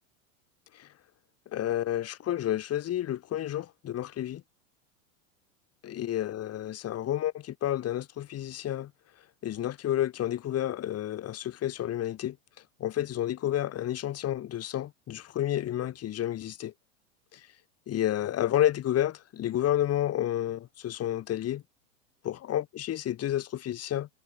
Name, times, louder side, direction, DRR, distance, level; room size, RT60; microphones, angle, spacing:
voice 1, 1.5-4.4 5.8-8.9 9.4-12.4 12.8-16.7 17.3-17.4 17.9-21.6 22.2-24.1, left 12 dB, 35° left, 5.5 m, -30 dB
hypercardioid pair, 95°, 42 cm